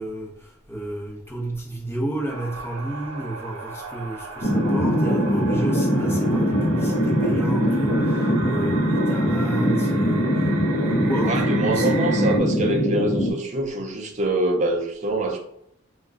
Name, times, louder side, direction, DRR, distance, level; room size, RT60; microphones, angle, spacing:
voice 1, 0.0-12.4, right 1 dB, 10° left, -4 dB, 0.9 m, -32 dB
sound 1, 2.3-12.4, right 4 dB, 85° right, 0.5 m, -36 dB
sound 2, 4.4-13.3, equal, 40° left, 0.9 m, -22 dB
voice 2, 11.2-15.4, right 2 dB, 35° right, 2 dB, 0.6 m, -25 dB
2.9 x 2.3 x 3.6 m, 0.72 s
head